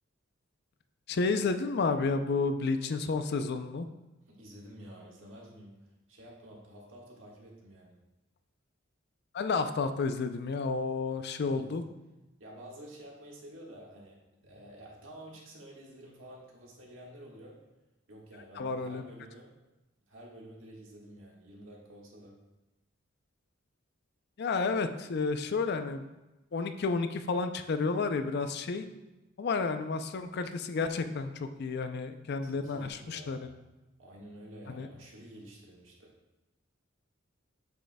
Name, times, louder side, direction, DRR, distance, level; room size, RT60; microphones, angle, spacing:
voice 1, 1.1-3.9 9.3-11.8 18.6-19.0 24.4-26.1 26.5-28.8 29.4-33.5 34.8-34.9, left 4 dB, 55° left, 9 dB, 0.4 m, -31 dB
voice 2, 4.3-8.0 11.4-11.8 12.4-17.6 18.1-19.5 20.1-22.4 32.4-33.5 34.0-36.1, right 1 dB, 70° right, -2 dB, 1.6 m, -50 dB
8.2 x 6.3 x 2.2 m, 1.0 s
head